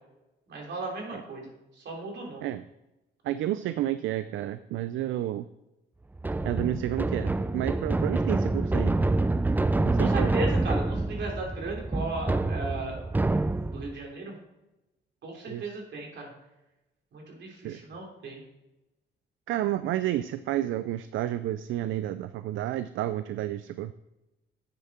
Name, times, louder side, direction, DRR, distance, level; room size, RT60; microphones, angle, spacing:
voice 1, 0.5-1.5 1.8-2.5 10.0-13.0 13.7-14.3 15.2-16.3 17.1-18.4, right 2 dB, 60° right, -1 dB, 3.5 m, -36 dB
voice 2, 3.2-5.5 6.4-8.9 9.8-10.3 15.5-15.8 17.6-17.8 19.5-23.9, right 13 dB, 80° right, 12 dB, 0.4 m, -30 dB
sound 1, 6.2-14.0, right 2 dB, 10° right, 0.3 m, -27 dB
9.4 x 6.8 x 4.3 m, 0.97 s
cardioid pair, 90°, 20 cm